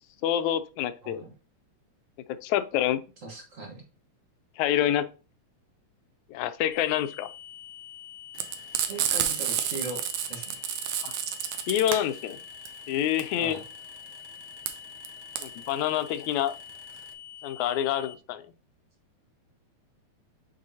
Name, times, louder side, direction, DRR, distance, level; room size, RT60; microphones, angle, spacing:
voice 1, 0.2-1.2 2.4-3.0 4.6-5.0 6.3-7.3 11.0-11.1 11.7-12.4 12.9-13.6 15.4-16.6 17.4-18.4, left 11 dB, 80° left, 1.9 m, -27 dB
voice 2, 3.2-3.8 8.8-10.6 13.4-13.6, right 2 dB, 55° right, 0.8 m, -39 dB
sound 1, 6.7-18.1, left 10 dB, 65° left, 1.5 m, -46 dB
Frying (food), 8.4-17.1, right 9 dB, 75° right, 1.8 m, -31 dB
7.6 x 4.5 x 2.8 m
omnidirectional pair, 3.4 m